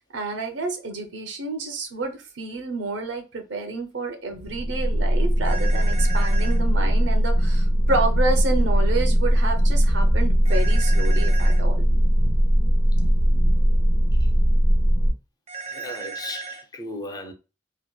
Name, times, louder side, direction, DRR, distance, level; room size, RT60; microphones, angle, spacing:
voice 1, 0.1-11.8, right 3 dB, 80° right, 0.6 m, -29 dB
sound 1, 4.3-15.1, equal, 60° left, 0.7 m, -19 dB
sound 2, 5.4-6.6 10.5-11.6 15.5-16.6, right 5 dB, 35° right, 0.4 m, -36 dB
voice 2, 15.7-17.3, left 1 dB, 20° left, 0.4 m, -36 dB
2.8 x 2.1 x 2.2 m
head